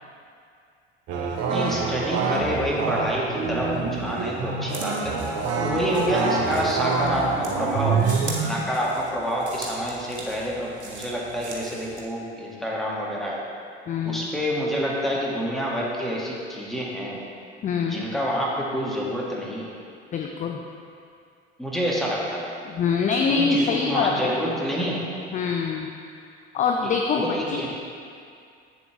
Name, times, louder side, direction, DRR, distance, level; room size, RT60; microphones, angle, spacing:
sound 1, 1.1-8.6, right 4 dB, 50° right, 0.9 m, -26 dB
voice 1, 1.5-5.2 5.6-8.0 8.4-13.4 14.0-17.2 17.8-19.8 21.6-22.6 23.3-25.2 26.8-27.7, equal, ahead, -5 dB, 1.6 m, -28 dB
sound 2, 4.7-12.0, right 2 dB, 80° right, 1.0 m, -40 dB
voice 2, 13.9-14.3 17.6-18.1 20.1-20.6 22.7-24.3 25.3-25.9 26.5-27.6, left 5 dB, 25° left, 2 dB, 0.5 m, -24 dB
8.1 x 6.9 x 3.5 m, 2.4 s
figure-of-eight pair, 60°, 33 cm